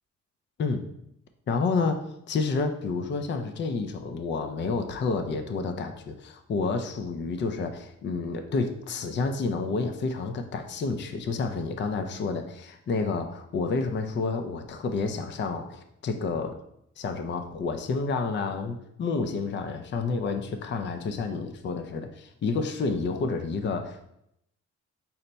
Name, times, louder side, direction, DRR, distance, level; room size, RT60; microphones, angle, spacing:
voice 1, 1.5-2.0 2.3-16.5 17.0-24.1, left 4 dB, 40° left, 7 dB, 0.5 m, -29 dB
5.6 x 2.1 x 3.9 m, 0.77 s
cardioid pair, 90°, 30 cm